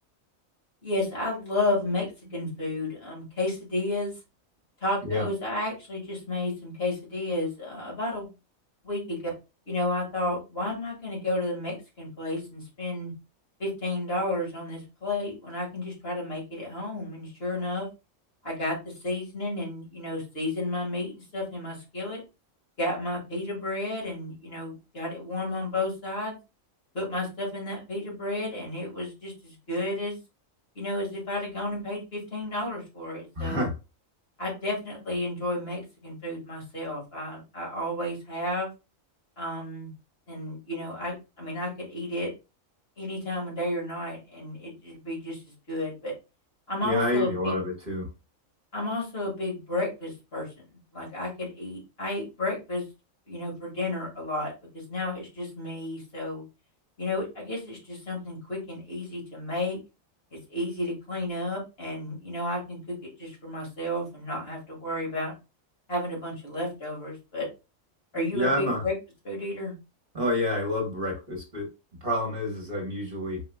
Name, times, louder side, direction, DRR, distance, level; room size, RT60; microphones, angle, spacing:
voice 1, 0.8-4.1 4.8-8.3 8.8-9.2 9.7-13.1 13.6-17.9 18.4-18.7 19.0-22.2 22.8-26.4 26.9-30.2 30.8-33.7 34.4-38.7 39.4-39.9 40.3-42.3 43.0-45.4 45.7-46.1 46.7-47.6 48.7-50.5 50.9-52.8 53.3-56.4 57.0-59.8 60.5-65.3 65.9-67.5 68.1-68.9 69.2-69.7, left 1 dB, 45° left, -2 dB, 2.1 m, -32 dB
voice 2, 33.4-33.7 46.8-48.1 68.3-68.8 70.1-71.7 72.0-73.4, left 1 dB, 40° right, 0 dB, 1.5 m, -28 dB
4.8 x 4.7 x 2.3 m, 0.28 s
omnidirectional pair, 1.4 m